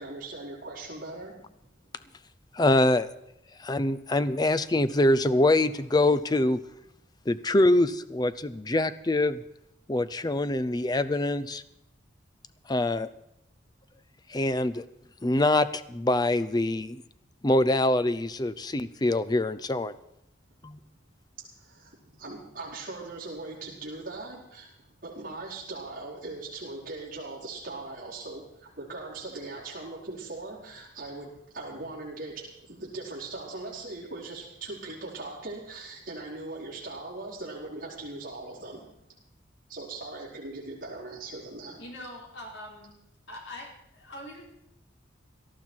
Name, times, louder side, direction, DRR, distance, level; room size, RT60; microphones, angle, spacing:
voice 1, 0.0-1.5 21.6-38.9 39.7-41.8, right 2 dB, 45° right, -7 dB, 4.6 m, -40 dB
voice 2, 2.5-3.1 3.6-6.6 7.3-9.4 9.9-11.6 12.7-13.1 14.3-14.8 15.2-17.0 17.4-19.9 20.6-20.8, left 1 dB, 20° left, 13 dB, 0.5 m, -24 dB
voice 3, 41.8-43.0 43.3-44.5, left 1 dB, 75° left, -1 dB, 4.7 m, -43 dB
18.0 x 13.0 x 4.6 m, 0.79 s
head